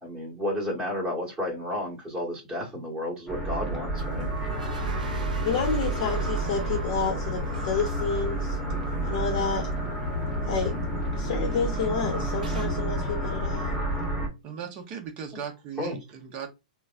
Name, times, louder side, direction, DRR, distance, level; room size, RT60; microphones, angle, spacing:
voice 1, 0.0-4.3 15.8-16.0, left 1 dB, 15° right, 1.4 m, -32 dB
sound 1, 3.3-14.3, right 1 dB, 10° left, 1.0 m, -29 dB
sound 2, 4.0-12.7, right 6 dB, 80° right, 0.5 m, -45 dB
voice 2, 5.4-8.6 9.1-9.7 10.4-10.8 11.1-13.7, left 5 dB, 55° left, 0.8 m, -29 dB
voice 3, 14.4-16.5, right 7 dB, 35° right, 0.9 m, -37 dB
3.2 x 2.1 x 2.5 m
hypercardioid pair, 135°, 4 cm